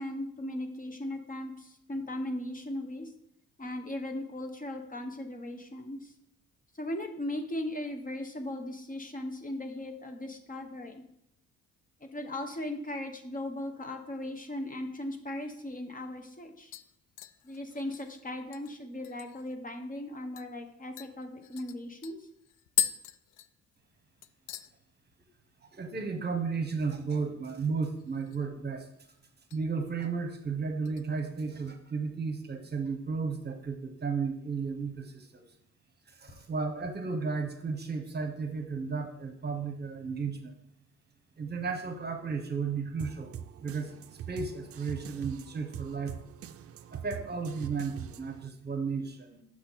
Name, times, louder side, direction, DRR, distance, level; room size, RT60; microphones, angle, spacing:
voice 1, 0.0-3.1 3.6-6.1 6.7-11.0 12.0-16.7 17.4-22.3, left 1 dB, 25° left, 5 dB, 1.0 m, -38 dB
sound 1, 15.6-15.7 16.1-16.4 16.7-19.6 19.9-20.0 20.4-20.5 21.0-24.0 24.2-24.7 25.1-25.5 25.7-25.8 27.9-28.6 28.9-29.6 30.0-30.3 30.9-31.8 32.1-32.2, left 11 dB, 85° left, 0.5 m, -38 dB
voice 2, 25.7-28.9 29.5-35.4 36.1-40.5 41.4-46.2 46.9-49.4, right 5 dB, 35° right, 6 dB, 1.1 m, -34 dB
sound 2, 43.0-48.5, right 9 dB, 50° right, 0.5 m, -43 dB
6.3 x 5.7 x 4.1 m, 0.76 s
cardioid pair, 85°, 30 cm